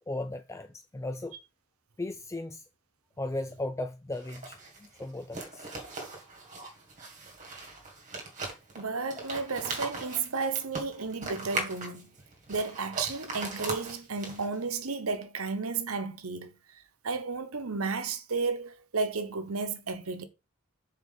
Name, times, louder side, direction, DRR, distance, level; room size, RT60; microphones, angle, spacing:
voice 1, 0.1-1.4 2.0-2.6 3.2-5.7, left 2 dB, 15° left, 0.4 m, -36 dB
sound 1, 4.1-14.7, right 3 dB, 35° right, 2.0 m, -39 dB
voice 2, 8.8-12.1 12.5-16.6 17.0-20.3, right 4 dB, 80° right, 1.0 m, -33 dB
6.4 x 4.4 x 5.6 m
head